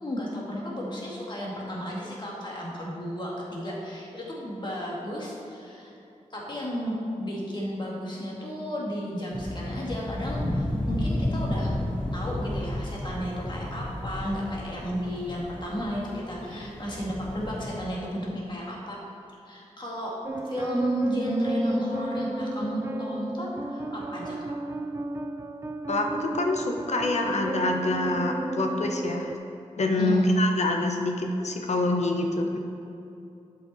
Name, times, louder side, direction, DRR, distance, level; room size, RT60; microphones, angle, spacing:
voice 1, 0.0-5.9 6.3-11.7 12.1-19.0 19.5-20.2 20.4-24.4 30.0-30.3, equal, 40° left, -4 dB, 2.0 m, -33 dB
sound 1, 9.3-17.8, left 1 dB, 10° left, 0.7 m, -32 dB
sound 2, 20.2-29.4, right 2 dB, 20° right, 0.3 m, -33 dB
voice 2, 25.9-29.3 29.8-32.6, left 2 dB, 65° left, 2 dB, 0.9 m, -26 dB
11.5 x 5.6 x 4.2 m, 2.8 s
wide cardioid pair, 115°, 12 cm